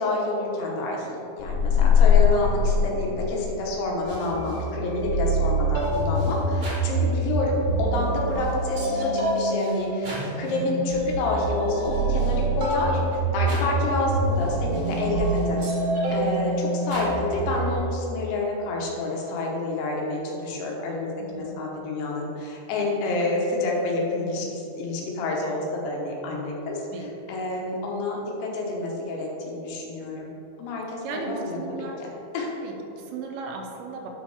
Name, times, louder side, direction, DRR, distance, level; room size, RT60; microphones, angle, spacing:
voice 1, 0.0-15.6 16.1-26.9 27.3-30.3 30.6-31.9 32.3-32.5, left 2 dB, 85° left, -2 dB, 3.4 m, -28 dB
sound 1, 1.4-3.8, left 7 dB, 70° left, 2.1 m, -20 dB
voice 2, 1.8-2.2 10.8-10.9 16.0-16.6 21.2-21.6 26.9-27.1 31.0-32.0 32.6-34.1, right 4 dB, 85° right, 2 dB, 3.0 m, -37 dB
sound 2, 4.0-17.7, right 2 dB, 55° right, 1.3 m, -26 dB
10.0 x 5.2 x 3.5 m, 2.8 s
omnidirectional pair, 5.2 m